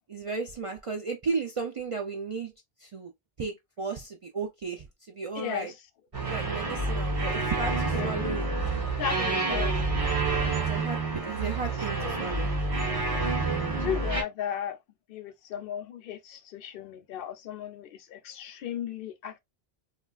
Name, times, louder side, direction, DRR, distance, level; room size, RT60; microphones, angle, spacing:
voice 1, 0.1-2.5 2.8-3.1 3.4-5.7 6.2-8.5 9.2-9.7 10.6-12.5, right 4 dB, 60° right, 0.3 m, -34 dB
voice 2, 5.4-5.7 7.9-8.2 9.0-9.8 12.0-12.4 13.6-14.8 15.1-19.4, left 9 dB, 65° left, 0.7 m, -36 dB
sound 1, 6.1-14.2, right 3 dB, 35° right, 1.0 m, -28 dB
3.2 x 2.4 x 2.2 m
omnidirectional pair, 1.1 m